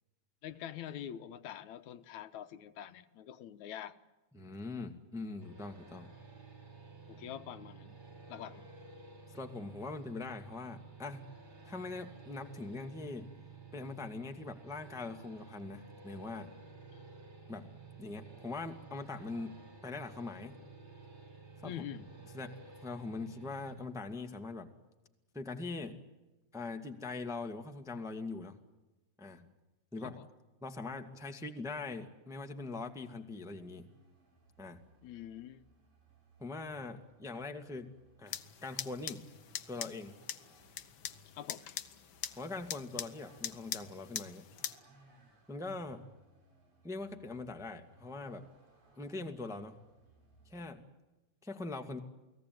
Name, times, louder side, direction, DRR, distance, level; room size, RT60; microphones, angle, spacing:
voice 1, 0.4-4.0 7.1-8.0 8.3-8.7 16.9-17.0 21.6-22.1 30.0-30.3 35.0-35.6 41.4-41.7, left 10 dB, 80° left, 11 dB, 2.4 m, -45 dB
voice 2, 4.3-6.1 9.3-11.3 11.6-13.3 13.7-16.5 17.5-17.7 18.0-20.5 21.6-21.7 22.3-22.5 22.8-24.7 25.3-26.0 26.5-28.6 29.2-29.5 29.9-30.2 30.6-33.9 34.6-34.8 36.4-37.9 38.2-39.2 39.7-40.2 42.3-44.4 45.5-46.0 46.8-48.5 49.0-49.7 50.4-50.8 51.4-52.0, left 3 dB, ahead, 5 dB, 1.3 m, -42 dB
sound 1, 5.4-23.8, right 4 dB, 40° right, 5.9 m, -53 dB
Vehicle, 33.5-50.7, right 2 dB, 75° right, 7.4 m, -64 dB
sound 2, 38.3-44.8, left 9 dB, 55° left, 1.5 m, -43 dB
29.5 x 19.0 x 9.3 m, 1.1 s
omnidirectional pair, 3.3 m